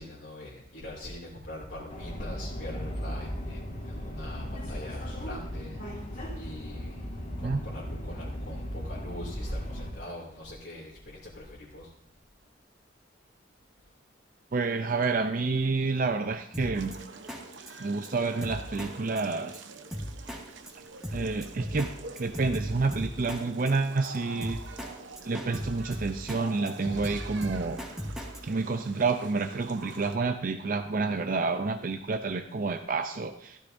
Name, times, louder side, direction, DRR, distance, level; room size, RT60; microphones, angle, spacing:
voice 1, 0.0-5.9 6.3-11.9 20.2-20.4 26.9-27.1, left 1 dB, 65° left, -6 dB, 2.6 m, -43 dB
Subway metro underground, 1.9-9.9, equal, 45° left, 2.6 m, -36 dB
voice 2, 14.5-16.9 17.8-19.6 21.1-21.9 22.2-24.6 25.2-27.8 28.4-33.6, right 3 dB, 45° right, 7 dB, 0.5 m, -29 dB
Drum kit, 16.5-16.9 17.3-17.4 17.7-17.8 18.0-18.1 18.4-18.9 19.2-19.3 19.5-19.6 19.9-20.4 20.7-20.8 21.0-21.9 22.2-23.4 23.7-23.8 24.0-24.1 24.4-24.9 25.2-26.4 26.7-28.4, equal, 5° right, 1.9 m, -36 dB
sound 1, 16.7-30.2, right 4 dB, 70° right, 0.9 m, -46 dB
15.0 x 13.0 x 2.7 m, 0.70 s
head